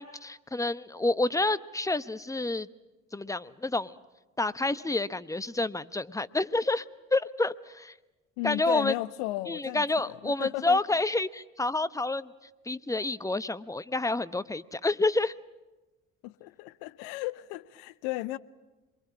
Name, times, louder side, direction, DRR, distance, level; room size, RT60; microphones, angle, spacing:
voice 1, 0.0-2.7 3.1-3.9 4.4-6.8 7.1-7.9 8.4-8.9 9.5-12.3 12.7-15.3, left 2 dB, 10° left, 1.0 m, -29 dB
voice 2, 8.4-10.8 16.2-18.4, left 18 dB, 70° left, 0.9 m, -35 dB
27.5 x 22.5 x 8.7 m
hypercardioid pair, 55°, 36 cm